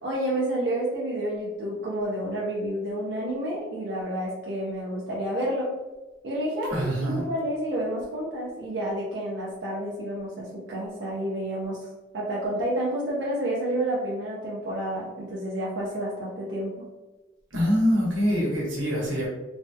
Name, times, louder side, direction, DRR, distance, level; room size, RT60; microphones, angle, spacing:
voice 1, 0.0-5.7 6.2-11.9 12.1-16.7, right 1 dB, 60° right, -6 dB, 0.6 m, -29 dB
voice 2, 6.7-7.2 17.5-19.3, equal, 90° right, -4 dB, 1.1 m, -24 dB
3.3 x 2.2 x 2.7 m, 1.1 s
head